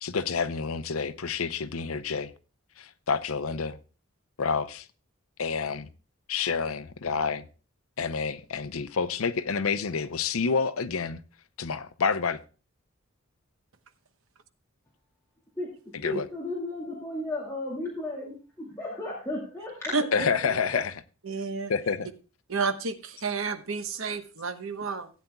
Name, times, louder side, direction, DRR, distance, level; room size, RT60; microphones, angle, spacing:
voice 1, 0.0-2.3 2.8-3.8 4.4-4.9 5.4-5.9 6.3-7.4 8.0-11.2 11.6-12.4 16.0-16.3 20.1-20.9 21.7-22.1, left 5 dB, 90° left, 0.7 m, -28 dB
voice 2, 16.0-20.8, left 2 dB, 15° left, 2.4 m, -34 dB
voice 3, 19.9-20.2 21.2-21.7 22.5-25.1, right 4 dB, 70° right, 1.1 m, -31 dB
17.0 x 9.2 x 2.3 m
head